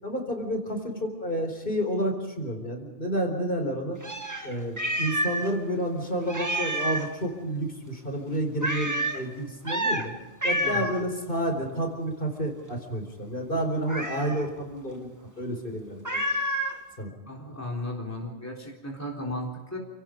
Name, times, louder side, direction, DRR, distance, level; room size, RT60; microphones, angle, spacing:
voice 1, 0.0-4.0 4.4-10.1 10.4-16.2 17.0-17.1, right 1 dB, 45° left, 4 dB, 4.6 m, -30 dB
Meow, 4.0-5.5 5.8-5.9 6.3-7.1 8.6-9.2 9.6-10.1 10.4-11.0 13.9-14.4 16.0-16.8, right 1 dB, 15° right, 2.0 m, -29 dB
voice 2, 10.6-10.9 17.3-19.8, left 1 dB, 10° left, -1 dB, 3.8 m, -35 dB
29.5 x 18.0 x 5.3 m, 1.2 s
omnidirectional pair, 1.2 m